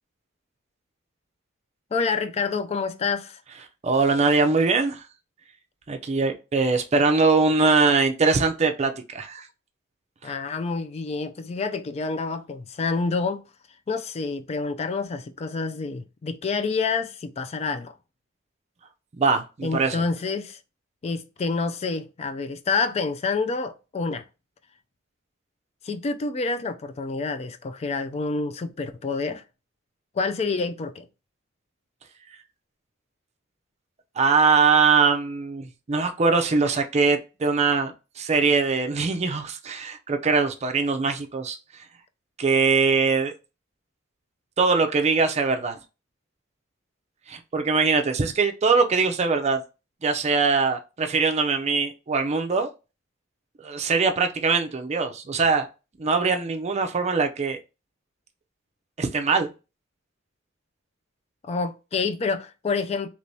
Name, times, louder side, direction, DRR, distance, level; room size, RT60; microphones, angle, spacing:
voice 1, 1.9-3.4 10.2-13.4 13.9-17.9 19.6-20.6 21.0-24.2 25.8-29.4 30.1-31.1 61.4-63.1, left 4 dB, 30° left, 0.3 m, -28 dB
voice 2, 3.8-5.0 5.9-9.5 10.2-10.3 19.1-20.0 34.2-41.6 42.4-43.3 44.6-45.8 47.3-49.6 50.0-52.7 53.6-55.7 56.0-57.6 59.0-59.5, right 4 dB, 35° right, 0.5 m, -22 dB
3.3 x 3.0 x 2.7 m
head